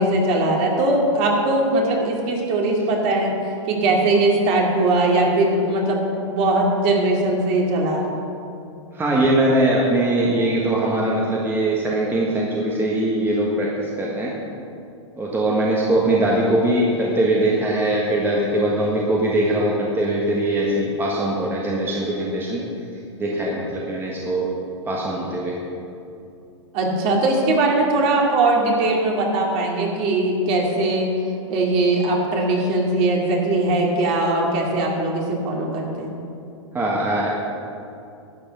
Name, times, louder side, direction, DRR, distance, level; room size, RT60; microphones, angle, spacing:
voice 1, 0.0-3.3 3.7-8.2 26.7-31.1 31.5-36.1, right 2 dB, 40° right, -1 dB, 2.6 m, -20 dB
voice 2, 8.9-14.3 15.2-22.6 23.2-24.5 24.9-25.6 36.7-37.3, right 1 dB, 15° right, -4 dB, 1.5 m, -21 dB
11.5 x 8.9 x 5.5 m, 2.6 s
hypercardioid pair, 120°, 16 cm